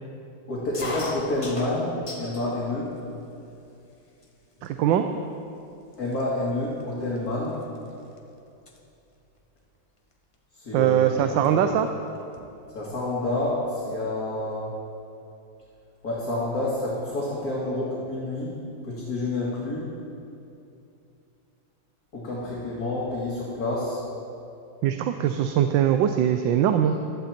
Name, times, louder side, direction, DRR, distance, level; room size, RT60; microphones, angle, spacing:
voice 1, 0.5-2.9 6.0-7.6 10.5-11.6 12.7-14.7 16.0-18.6 18.8-19.9 22.1-24.0, left 2 dB, 50° left, -7 dB, 2.5 m, -29 dB
sound 1, 0.7-2.5 2.9-3.6 4.2-4.3 4.6-5.0 5.6-5.7 5.9-8.2 8.5-8.8 10.1-10.3 11.4-11.5 11.8-11.9 12.2-13.0, left 3 dB, 25° left, 0.8 m, -38 dB
voice 2, 4.6-5.0 10.7-11.9 24.8-27.0, right 10 dB, 80° right, 7 dB, 1.3 m, -21 dB
15.0 x 12.0 x 4.4 m, 2.7 s
omnidirectional pair, 2.1 m